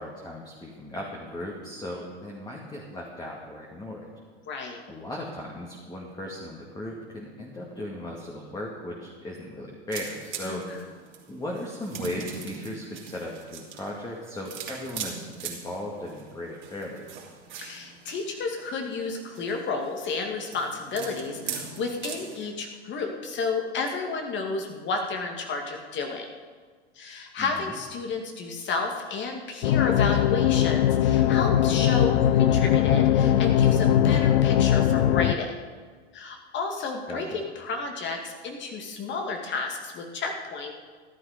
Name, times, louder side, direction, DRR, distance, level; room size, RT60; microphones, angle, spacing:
voice 1, 0.0-4.1 4.9-10.6 11.3-17.0 27.4-27.8 37.1-37.3, left 1 dB, 10° left, -2 dB, 2.2 m, -37 dB
voice 2, 4.5-4.8 10.4-10.9 17.6-26.3 27.0-35.5 36.1-40.7, left 4 dB, 35° left, 3 dB, 2.3 m, -32 dB
sound 1, 9.9-22.5, right 6 dB, 35° right, 3.1 m, -41 dB
sound 2, 29.6-35.3, left 10 dB, 65° left, 0.7 m, -20 dB
14.0 x 12.0 x 5.2 m, 1.5 s
hypercardioid pair, 95°, 34 cm